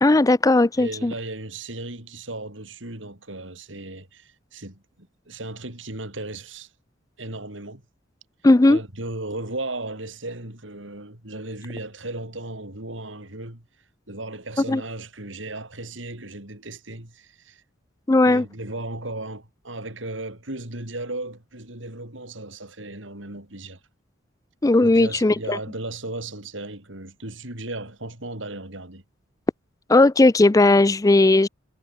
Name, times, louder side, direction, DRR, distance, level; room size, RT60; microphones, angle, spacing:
voice 1, 0.0-1.1 8.4-8.8 14.7-14.8 18.1-18.4 24.6-25.6 29.9-31.5, left 2 dB, 15° left, 0.4 m, -16 dB
voice 2, 0.8-6.7 7.2-7.8 8.7-13.6 14.1-17.6 18.2-23.8 24.8-29.0, right 2 dB, 70° right, 5.4 m, -36 dB
head